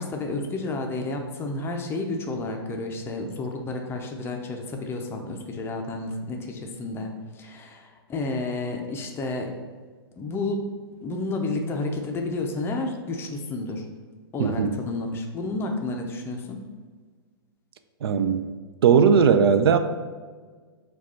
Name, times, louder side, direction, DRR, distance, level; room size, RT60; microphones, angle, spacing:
voice 1, 0.0-9.5 10.2-10.7 11.0-13.9 14.3-16.6, left 2 dB, 20° left, 3 dB, 0.5 m, -31 dB
voice 2, 14.4-14.8 18.0-18.5 18.8-19.8, right 6 dB, 70° right, 9 dB, 0.4 m, -18 dB
4.8 x 2.3 x 4.2 m, 1.5 s
hypercardioid pair, 125°, 13 cm